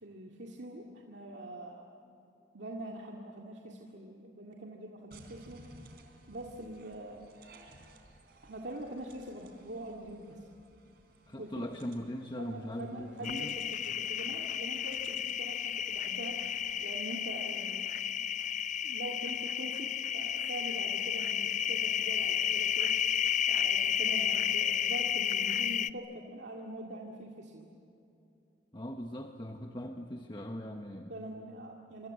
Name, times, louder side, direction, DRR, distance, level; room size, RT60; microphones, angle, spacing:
voice 1, 0.0-1.8 2.5-5.6 6.3-7.2 8.4-10.4 11.4-11.7 12.4-16.4 16.8-17.8 18.8-22.9 23.5-27.7 31.1-32.1, right 1 dB, 80° right, -1 dB, 2.2 m, -44 dB
sound 1, 5.1-16.8, right 2 dB, 65° right, 3.6 m, -59 dB
voice 2, 11.3-13.6 28.7-31.1, equal, 25° left, 3 dB, 1.1 m, -40 dB
sound 2, 13.2-25.9, left 9 dB, 45° left, 0.5 m, -32 dB
26.5 x 26.0 x 7.7 m, 2.8 s
head